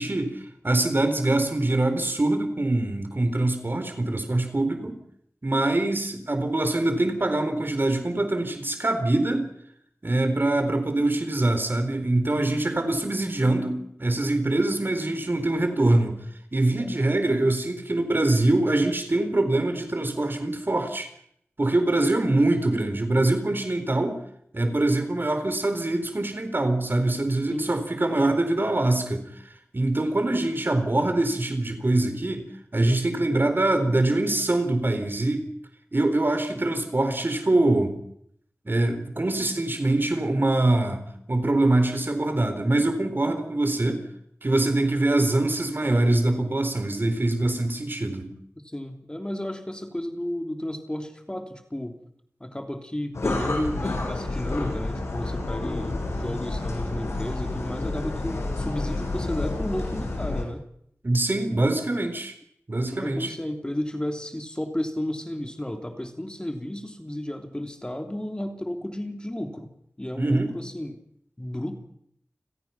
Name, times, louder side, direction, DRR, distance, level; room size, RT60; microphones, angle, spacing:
voice 1, 0.0-5.0 5.4-9.5 10.0-16.2 16.5-21.1 21.6-24.2 24.5-29.2 29.7-32.5 32.7-35.5 35.9-37.9 38.6-41.0 41.3-44.0 44.4-48.3 61.0-62.3 62.7-63.3 70.2-70.5, right 2 dB, 45° right, 8 dB, 4.3 m, -24 dB
voice 2, 48.6-52.0 52.4-60.6 62.8-69.7 70.0-71.0 71.4-71.8, left 1 dB, 20° left, 5 dB, 3.1 m, -33 dB
sound 1, 53.1-60.4, left 2 dB, 80° left, 7.5 m, -29 dB
30.0 x 17.0 x 5.9 m, 0.69 s
wide cardioid pair, 45°, 5 cm